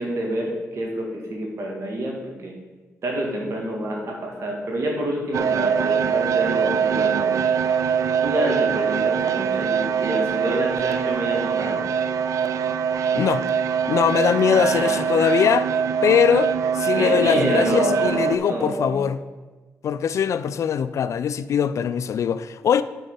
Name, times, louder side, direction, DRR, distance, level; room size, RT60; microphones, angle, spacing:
voice 1, 0.0-2.5 3.0-7.4 8.2-11.8 14.4-15.4 16.9-19.1, right 1 dB, 60° right, 2.1 m, -27 dB
sound 1, 5.3-18.4, right 7 dB, 75° right, 0.4 m, -23 dB
voice 2, 13.1-13.4 13.9-15.7 16.0-19.2 19.8-22.8, left 8 dB, 65° left, 0.3 m, -21 dB
8.1 x 4.3 x 5.6 m
cardioid pair, 90°, 6 cm